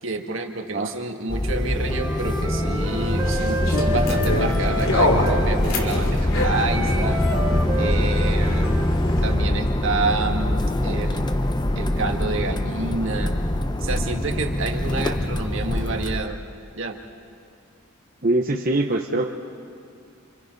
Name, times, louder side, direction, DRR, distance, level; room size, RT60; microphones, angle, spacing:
voice 1, 0.0-7.2 7.8-8.8 9.2-11.2 11.8-13.3 13.8-16.4 16.8-17.0, right 3 dB, 65° right, 3 dB, 1.9 m, -28 dB
sound 1, 1.3-16.2, left 1 dB, 20° left, 0.8 m, -23 dB
Wind instrument woodwind instrument, 1.9-5.5 6.3-8.9, equal, 25° right, 2.6 m, -30 dB
sound 2, 2.9-9.4, left 2 dB, 80° left, 2.6 m, -27 dB
voice 2, 18.2-19.3, right 2 dB, 45° right, 1 dB, 0.9 m, -22 dB
29.0 x 25.5 x 5.4 m, 2.4 s
head